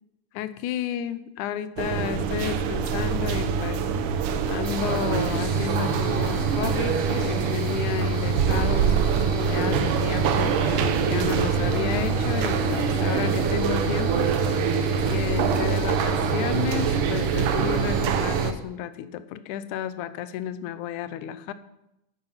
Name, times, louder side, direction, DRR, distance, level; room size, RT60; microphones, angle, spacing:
voice 1, 0.3-3.8 4.5-8.9 9.4-14.3 15.1-21.5, left 10 dB, 75° left, 12 dB, 2.1 m, -32 dB
sound 1, 1.8-18.5, right 6 dB, 80° right, 2.4 m, -24 dB
sound 2, 4.6-18.5, right 1 dB, 35° right, 4.5 m, -42 dB
sound 3, 8.6-17.6, right 6 dB, 60° right, 1.3 m, -39 dB
14.0 x 9.2 x 5.8 m, 0.86 s
omnidirectional pair, 3.8 m